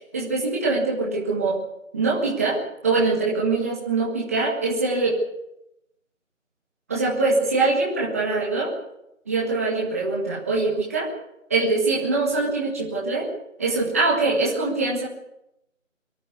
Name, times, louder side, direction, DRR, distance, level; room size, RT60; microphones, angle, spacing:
voice 1, 0.1-1.6 1.9-2.6 2.8-5.2 6.9-8.7 9.3-11.1 11.5-13.3 13.6-15.1, right 3 dB, 10° right, -4 dB, 1.9 m, -23 dB
23.0 x 13.5 x 9.6 m, 0.84 s
figure-of-eight pair, 170°, 40 cm